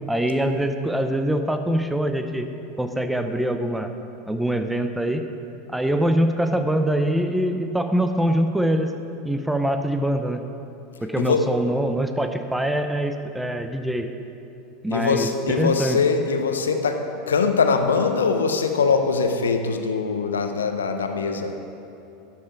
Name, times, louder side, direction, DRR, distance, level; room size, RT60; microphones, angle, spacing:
voice 1, 0.1-2.5 2.8-3.9 4.3-5.2 5.7-8.9 9.2-10.4 11.0-14.1 14.8-16.0, right 1 dB, 5° right, 6 dB, 0.6 m, -23 dB
voice 2, 14.9-17.0 17.3-21.5, left 5 dB, 90° left, 6 dB, 0.7 m, -22 dB
11.5 x 5.9 x 4.6 m, 2.9 s
hypercardioid pair, 90°, 0 cm